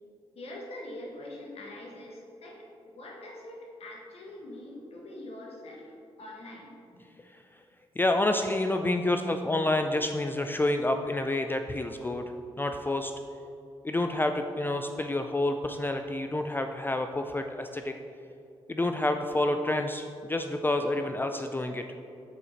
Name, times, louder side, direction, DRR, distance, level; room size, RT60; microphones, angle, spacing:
voice 1, 0.3-5.9 6.2-7.0 8.6-9.4, equal, 65° left, -1 dB, 1.6 m, -43 dB
voice 2, 8.0-12.2 12.6-13.1 13.8-17.9 18.7-21.8, left 2 dB, 20° left, 6 dB, 0.4 m, -28 dB
7.4 x 5.0 x 4.1 m, 2.6 s
supercardioid pair, 50°, 11 cm